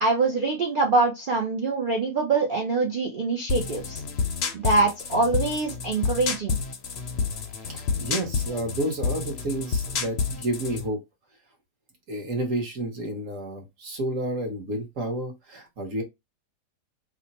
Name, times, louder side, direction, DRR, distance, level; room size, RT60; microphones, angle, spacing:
voice 1, 0.0-4.0 4.5-6.6, right 3 dB, 70° right, 0.5 m, -24 dB
sound 1, 3.5-10.9, left 5 dB, 60° left, 0.6 m, -29 dB
voice 2, 7.6-11.0 12.1-16.0, right 1 dB, 55° right, 1.3 m, -30 dB
3.1 x 2.1 x 4.0 m
omnidirectional pair, 1.8 m